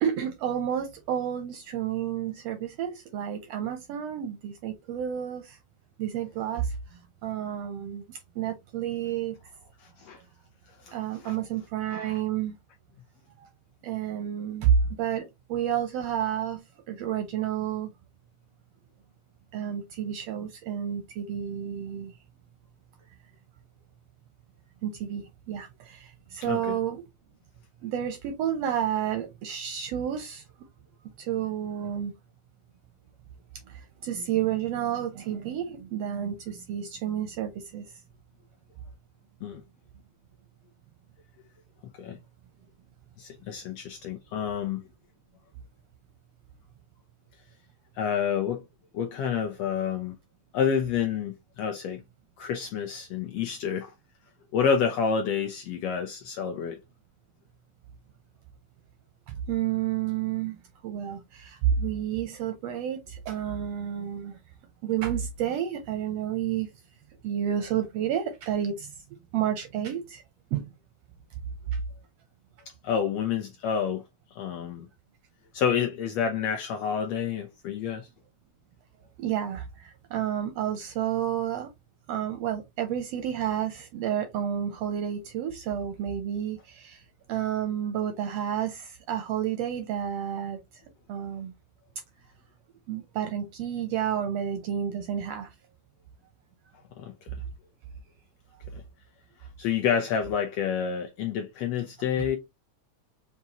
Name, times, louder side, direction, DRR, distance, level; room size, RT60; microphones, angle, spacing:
voice 1, 0.0-5.6 6.0-6.8 7.2-9.3 10.9-12.5 13.4-13.5 13.8-17.9 19.5-22.1 24.8-27.0 27.8-30.4 31.2-32.1 33.7-37.9 59.5-64.3 64.8-66.7 67.2-68.9 69.3-70.2 70.5-70.7 71.7-71.8 79.2-81.7 82.1-87.0 87.3-90.6 91.1-91.5 92.9-95.5, right 9 dB, 80° right, 1.4 m, -30 dB
voice 2, 9.8-10.2 10.8-11.0 11.2-11.3 11.9-12.2 26.4-26.8 39.4-39.6 42.0-42.2 43.2-44.8 48.0-48.6 48.9-50.2 50.5-52.0 52.4-53.9 54.5-56.8 72.8-74.0 74.3-74.9 75.5-78.1 97.0-97.3 98.7-98.8 99.4-102.4, left 7 dB, 75° left, 1.5 m, -29 dB
5.4 x 2.5 x 2.8 m
omnidirectional pair, 3.3 m